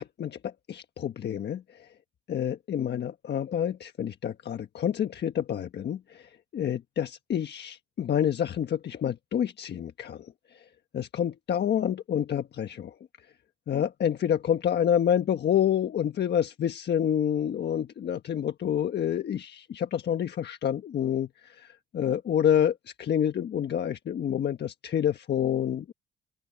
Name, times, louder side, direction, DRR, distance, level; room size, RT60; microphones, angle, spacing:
voice 1, 0.0-1.9 2.3-10.3 10.9-12.9 13.7-25.9, left 9 dB, 60° left, 1.3 m, -28 dB
open air
cardioid pair, 90°, 20 cm